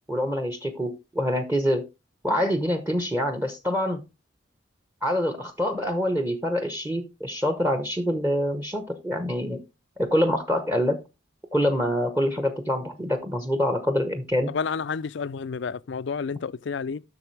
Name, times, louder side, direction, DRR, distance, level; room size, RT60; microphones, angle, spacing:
voice 1, 0.1-1.9 2.2-4.0 5.0-9.6 10.0-11.0 11.5-14.5, equal, 10° right, 0.9 m, -25 dB
voice 2, 14.5-17.0, left 5 dB, 70° left, 0.4 m, -30 dB
11.5 x 6.5 x 3.2 m
head